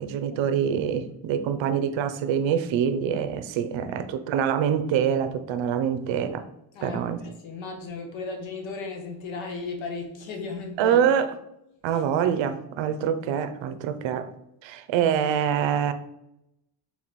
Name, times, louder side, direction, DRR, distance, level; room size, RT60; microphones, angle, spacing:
voice 1, 0.0-6.4 6.8-7.2 10.8-11.3 11.8-14.3 14.6-15.9, right 8 dB, 65° right, 0.6 m, -25 dB
voice 2, 6.7-11.1, left 4 dB, 65° left, 1.1 m, -35 dB
4.1 x 2.9 x 4.0 m
supercardioid pair, 85°, 49 cm